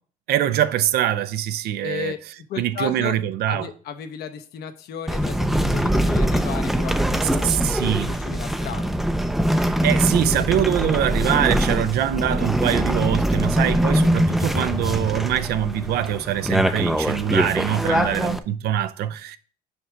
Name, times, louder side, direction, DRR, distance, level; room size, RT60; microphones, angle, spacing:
voice 1, 0.3-2.1 2.6-3.7 7.4-8.1 9.6-19.4, right 11 dB, 70° right, 0.5 m, -23 dB
voice 2, 1.8-2.2 2.5-3.2 3.5-8.9 17.7-18.2, left 8 dB, 70° left, 0.8 m, -34 dB
sound 1, 5.1-18.4, equal, ahead, 0.4 m, -22 dB
5.3 x 4.9 x 4.4 m
cardioid pair, 110°, 17 cm